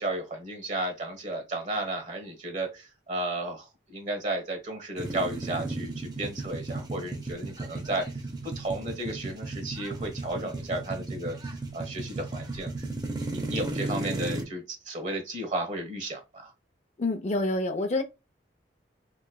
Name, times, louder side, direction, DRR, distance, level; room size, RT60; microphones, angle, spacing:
voice 1, 0.0-16.5, right 1 dB, 45° right, 1.3 m, -34 dB
sound 1, 5.0-14.4, right 2 dB, 25° right, 0.7 m, -35 dB
voice 2, 17.0-18.0, left 2 dB, 40° left, 0.6 m, -27 dB
3.7 x 3.1 x 2.3 m
head